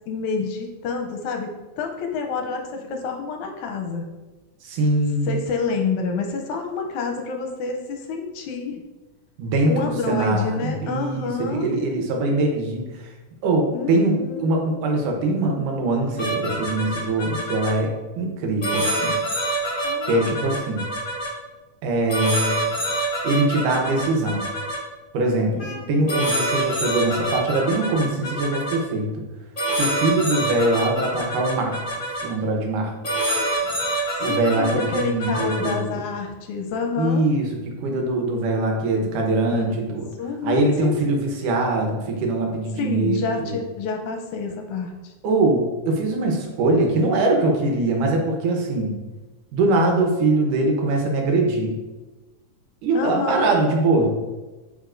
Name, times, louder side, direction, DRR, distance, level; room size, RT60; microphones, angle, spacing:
voice 1, 0.1-4.1 5.3-8.8 9.7-11.7 13.7-14.6 19.8-20.4 25.5-26.1 34.1-37.2 39.5-39.8 40.2-41.2 42.8-45.1 52.9-53.6, left 4 dB, 80° left, 4 dB, 2.0 m, -28 dB
voice 2, 4.6-5.4 9.4-13.1 13.4-19.2 20.1-20.9 21.8-22.6 23.2-24.5 25.1-29.2 29.7-31.8 32.2-32.9 34.2-36.0 37.0-40.1 40.4-43.6 45.2-48.9 49.5-51.8 52.8-54.1, right 2 dB, 80° right, 1 dB, 2.6 m, -22 dB
sound 1, 16.2-17.7 18.6-21.3 22.1-24.8 25.6-25.8 26.1-28.7 29.6-32.2 33.0-35.7, right 1 dB, 30° left, 1.9 m, -26 dB
8.1 x 5.1 x 2.5 m, 1.2 s
omnidirectional pair, 3.6 m